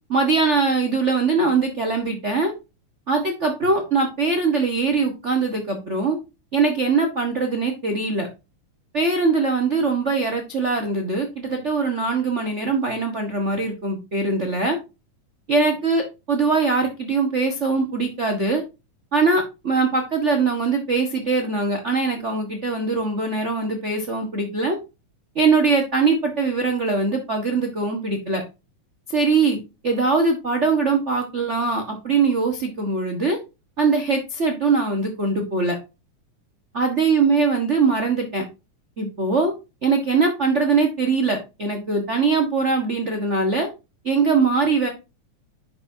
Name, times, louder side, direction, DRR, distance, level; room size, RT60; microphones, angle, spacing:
voice 1, 0.1-2.5 3.1-6.2 6.5-8.3 8.9-14.8 15.5-18.6 19.1-24.8 25.3-28.4 29.1-29.6 29.8-33.4 33.8-35.8 36.7-38.4 39.0-39.5 39.8-43.7 44.0-44.9, right 4 dB, 60° right, 3 dB, 0.7 m, -22 dB
10.5 x 6.1 x 2.7 m, 0.27 s
omnidirectional pair, 3.4 m